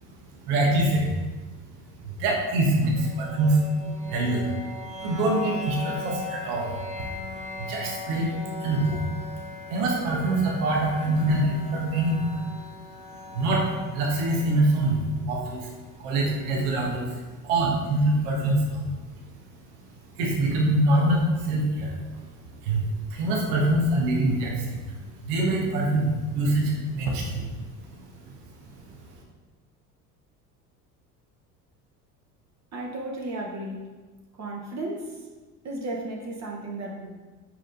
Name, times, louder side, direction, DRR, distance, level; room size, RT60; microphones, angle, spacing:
voice 1, 0.5-1.1 2.0-3.6 4.0-4.6 5.0-6.8 7.6-8.3 8.6-9.3 9.6-12.4 13.3-15.7 16.0-18.8 20.2-22.3 22.6-24.8 25.2-27.5, right 1 dB, 70° right, -1 dB, 1.4 m, -24 dB
sound 1, 3.0-16.9, left 3 dB, 15° right, 0.8 m, -39 dB
voice 2, 32.7-33.8 34.4-35.1 35.6-37.1, right 2 dB, 35° right, -1 dB, 1.2 m, -34 dB
5.1 x 4.7 x 3.9 m, 1.3 s
hypercardioid pair, 65°, 48 cm